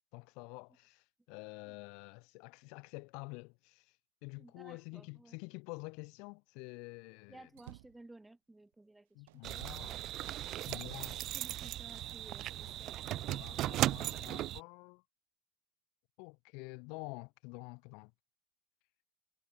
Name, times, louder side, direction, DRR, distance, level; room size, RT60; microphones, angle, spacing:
voice 1, 0.1-3.9 4.2-7.5 9.1-10.0 10.7-11.3 13.1-15.0 16.2-18.1, left 31 dB, 55° left, 3.0 m, -48 dB
voice 2, 4.4-5.4 7.3-9.4 11.2-13.4, right 2 dB, 5° right, 2.5 m, -57 dB
sound 1, 7.5-8.1 8.7-8.8 9.3-10.7 11.4-11.5 12.2-13.3, right 19 dB, 85° right, 5.2 m, -55 dB
sound 2, 9.4-14.6, right 14 dB, 35° right, 0.3 m, -37 dB
cardioid pair, 170°, 0 cm